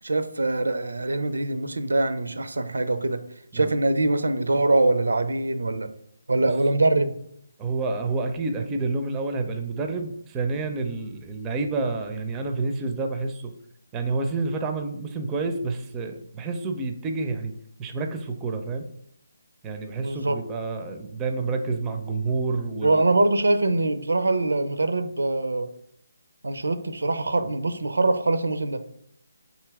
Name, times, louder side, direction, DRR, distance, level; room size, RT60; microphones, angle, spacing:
voice 1, 0.0-3.2 3.5-5.9 6.3-7.1 20.0-20.4 22.8-25.7 26.4-28.8, right 2 dB, 80° right, 10 dB, 0.4 m, -23 dB
voice 2, 7.6-13.5 13.9-17.5 17.8-18.8 19.6-23.0, right 3 dB, 15° right, 5 dB, 0.4 m, -29 dB
3.8 x 2.8 x 4.6 m, 0.69 s
figure-of-eight pair, 150°, 0 cm